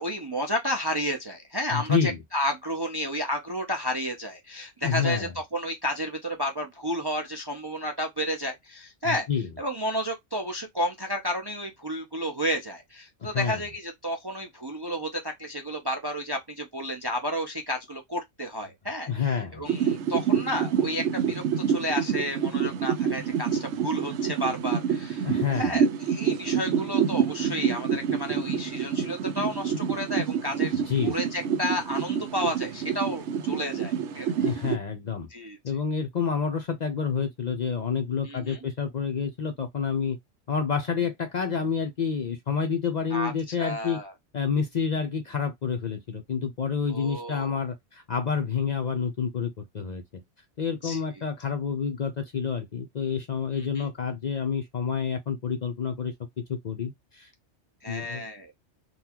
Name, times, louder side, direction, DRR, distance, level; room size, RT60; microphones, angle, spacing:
voice 1, 0.0-9.3 9.6-34.3 35.3-35.6 38.2-38.6 43.1-44.1 46.9-47.6 50.8-51.0 53.5-53.9 57.8-58.5, equal, 30° right, 0.4 m, -32 dB
voice 2, 1.7-2.2 4.8-5.3 9.0-9.5 13.2-13.6 19.1-19.6 25.2-25.7 30.9-31.1 34.4-35.3 35.6-40.2 40.5-44.0 44.3-50.0 50.6-57.3 57.9-58.2, left 6 dB, 50° left, 0.6 m, -28 dB
sound 1, 19.6-34.8, right 7 dB, 80° right, 0.9 m, -27 dB
3.9 x 2.3 x 2.9 m
omnidirectional pair, 1.2 m